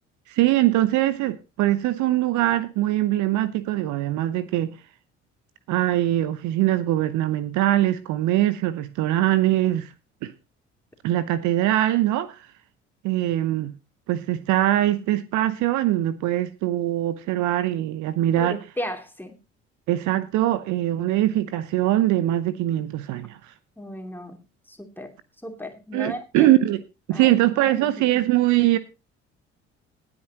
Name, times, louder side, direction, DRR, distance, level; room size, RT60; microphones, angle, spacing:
voice 1, 0.3-4.8 5.7-9.9 10.2-10.3 11.0-12.5 13.0-13.8 14.1-18.6 19.9-23.5 25.9-26.8 27.1-28.8, right 14 dB, 55° right, 0.8 m, -22 dB
voice 2, 18.4-19.4 23.8-24.4 24.7-25.1 25.4-26.5 27.1-27.4 27.7-28.2, left 1 dB, 5° left, 2.8 m, -35 dB
18.5 x 8.9 x 2.9 m
figure-of-eight pair, 50°, 36 cm